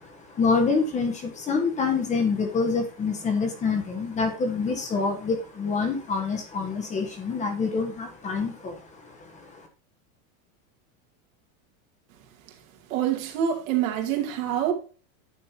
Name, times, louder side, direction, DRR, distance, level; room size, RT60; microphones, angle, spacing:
voice 1, 0.4-8.8, left 4 dB, 15° left, 1.4 m, -26 dB
voice 2, 12.9-14.7, right 10 dB, 65° right, 2.6 m, -26 dB
9.4 x 6.7 x 2.8 m
supercardioid pair, 170°, 43 cm